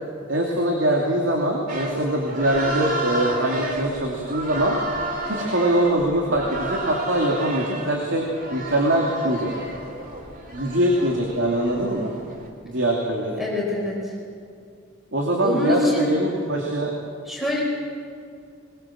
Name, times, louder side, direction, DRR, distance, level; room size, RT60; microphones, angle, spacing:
voice 1, 0.3-4.8 5.3-9.5 10.5-12.1 12.6-13.4 15.1-16.9, right 1 dB, 75° right, -1 dB, 2.7 m, -23 dB
sound 1, 1.7-12.5, right 1 dB, 45° right, 2.9 m, -32 dB
voice 2, 13.4-14.1 15.4-16.1 17.3-17.6, left 2 dB, ahead, -3 dB, 4.4 m, -25 dB
21.0 x 20.5 x 7.6 m, 2.4 s
head